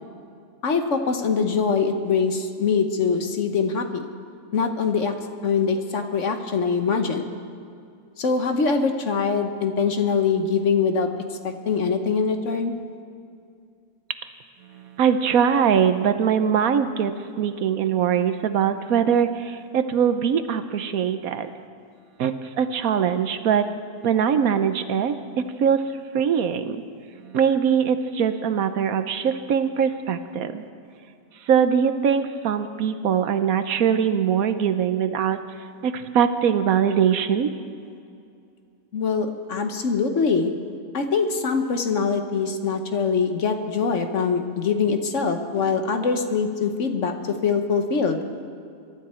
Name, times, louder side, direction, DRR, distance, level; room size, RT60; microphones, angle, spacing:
voice 1, 0.6-4.1 4.5-5.1 5.4-7.3 8.2-11.1 11.4-12.8 38.9-40.5 40.9-47.1 47.4-48.2, left 5 dB, 55° left, 6 dB, 1.3 m, -23 dB
voice 2, 14.7-21.5 22.2-23.7 24.0-25.9 26.1-26.8 27.2-30.6 31.5-35.4 35.8-37.5, right 7 dB, 70° right, 10 dB, 1.2 m, -22 dB
23.0 x 12.5 x 4.4 m, 2.4 s
omnidirectional pair, 1.6 m